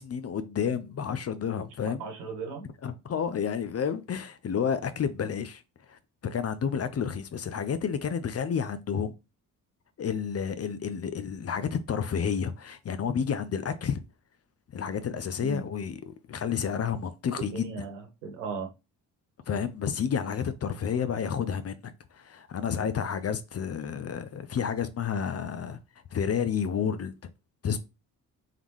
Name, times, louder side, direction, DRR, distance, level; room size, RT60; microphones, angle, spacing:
voice 1, 0.0-2.1 2.8-5.6 5.9-9.1 10.0-14.0 14.7-17.7 19.5-25.8 26.1-27.1 27.6-27.8, left 7 dB, 35° left, 0.6 m, -30 dB
voice 2, 2.0-2.6 15.4-15.6 17.4-18.7, right 4 dB, 85° right, 1.3 m, -36 dB
3.7 x 3.6 x 3.1 m
hypercardioid pair, 45°, 45 cm